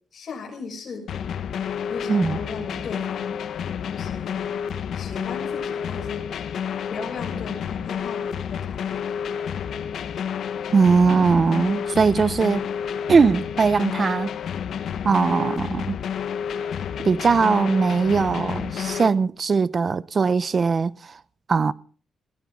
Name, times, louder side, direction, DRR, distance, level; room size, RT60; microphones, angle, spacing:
voice 1, 0.1-1.2 1.9-3.4 3.9-4.6 4.9-6.2 6.9-9.3, left 5 dB, 50° left, 7.6 m, -37 dB
sound 1, 1.1-19.1, left 8 dB, 75° left, 1.5 m, -30 dB
voice 2, 2.1-2.4 10.7-12.7 13.1-14.3 15.0-16.0 17.0-21.2 21.5-21.7, right 5 dB, 40° right, 0.8 m, -20 dB
20.0 x 18.0 x 3.9 m
cardioid pair, 100°, 0 cm